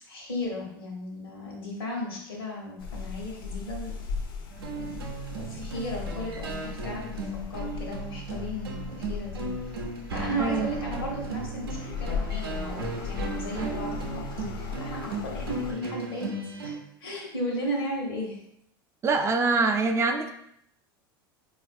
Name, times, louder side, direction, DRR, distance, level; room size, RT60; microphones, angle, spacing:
voice 1, 0.1-3.9 4.7-9.8 10.1-18.4, equal, 90° left, -1 dB, 1.0 m, -35 dB
sound 1, 2.8-15.7, left 5 dB, 70° left, 0.6 m, -37 dB
Spooky music, 4.5-16.7, right 3 dB, 85° right, 0.5 m, -36 dB
voice 2, 19.0-20.3, right 3 dB, 25° right, 5 dB, 0.3 m, -24 dB
4.0 x 2.4 x 2.5 m, 0.75 s
hypercardioid pair, 90°, 12 cm